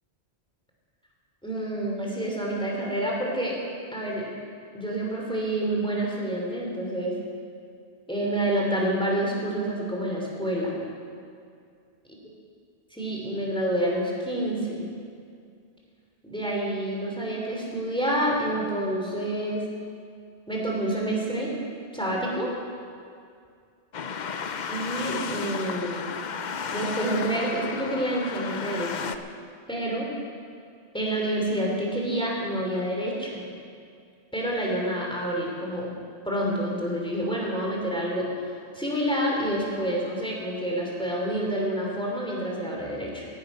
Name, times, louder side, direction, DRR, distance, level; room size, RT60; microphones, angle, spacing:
voice 1, 1.4-3.6 3.9-4.3 4.7-7.1 8.1-10.8 12.9-14.8 16.2-19.6 20.5-21.5 21.9-22.5 24.7-26.1 26.7-29.1 29.7-30.1 30.9-33.4 34.3-35.9 36.2-38.3 38.7-43.3, right 1 dB, 5° left, -3 dB, 3.2 m, -28 dB
sound 1, 23.9-29.2, left 6 dB, 50° left, 0.7 m, -33 dB
18.0 x 11.5 x 5.6 m, 2.3 s
omnidirectional pair, 1.1 m